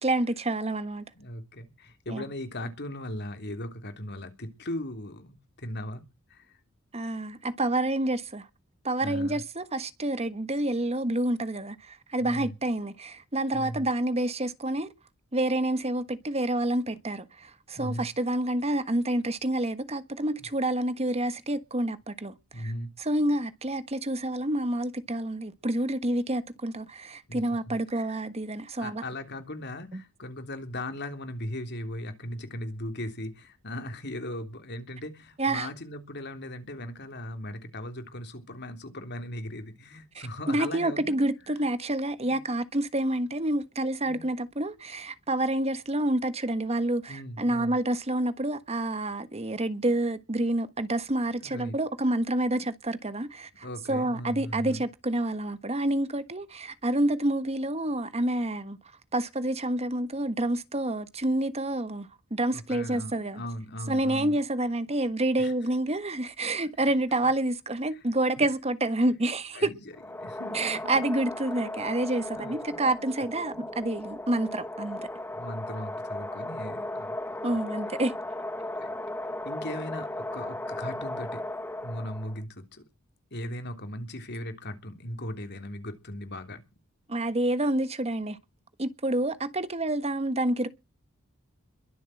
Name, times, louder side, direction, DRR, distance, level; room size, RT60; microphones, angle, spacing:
voice 1, 0.0-1.0 2.1-2.2 6.9-8.5 8.8-14.9 15.3-22.7 23.0-29.0 29.9-30.0 35.4-35.7 40.1-58.8 59.1-63.4 63.9-69.7 70.5-75.1 76.6-76.7 77.4-78.1 87.1-88.4 88.8-90.7, right 1 dB, 30° right, 1.4 m, -28 dB
voice 2, 1.1-6.0 6.3-6.6 9.0-9.4 12.2-12.5 13.5-13.8 17.7-18.1 20.4-20.5 22.5-22.9 27.3-27.4 27.7-27.8 28.8-41.2 42.2-42.4 44.1-44.3 47.1-47.7 49.8-49.9 51.4-51.7 52.5-52.6 53.6-54.8 62.5-64.4 65.4-65.5 66.8-66.9 69.5-69.9 70.2-71.1 72.3-72.6 73.5-73.6 75.3-77.6 78.6-81.4 81.8-82.8 83.3-86.6, left 1 dB, 50° left, 3.4 m, -38 dB
Wind sci-fi effect deserted land, 69.9-82.4, left 1 dB, 10° left, 1.2 m, -36 dB
22.5 x 7.8 x 7.8 m
head